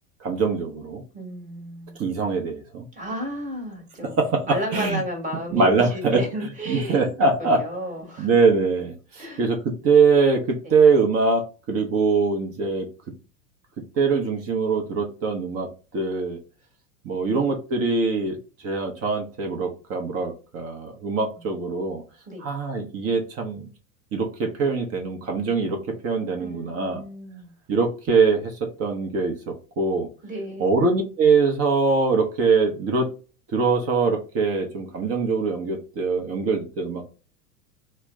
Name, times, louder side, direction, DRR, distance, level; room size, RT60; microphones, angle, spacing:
voice 1, 0.2-1.0 2.0-2.9 4.2-5.0 5.5-6.2 6.7-7.6 8.2-12.9 14.0-15.7 15.9-16.4 17.0-22.0 22.4-23.7 24.1-27.0 27.7-30.1 30.6-33.1 33.5-37.1, right 4 dB, 35° right, 3 dB, 0.8 m, -23 dB
voice 2, 1.1-2.0 2.9-8.3 9.2-9.4 10.6-10.8 21.3-21.5 22.3-22.5 26.4-27.5 30.2-30.7, equal, 15° right, 1 dB, 1.3 m, -33 dB
3.2 x 2.0 x 3.2 m, 0.35 s
figure-of-eight pair, 85°, 44 cm